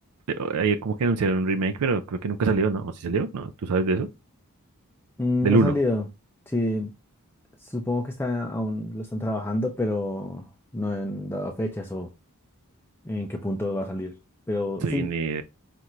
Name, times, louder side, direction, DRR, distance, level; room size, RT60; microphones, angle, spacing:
voice 1, 0.3-4.1 5.4-5.8 14.8-15.4, right 4 dB, 85° right, 0.4 m, -24 dB
voice 2, 5.2-6.0 6.5-6.9 7.6-10.5 10.7-12.1 13.0-14.1 14.5-15.1, left 1 dB, 10° left, 0.4 m, -28 dB
5.4 x 2.5 x 3.0 m
head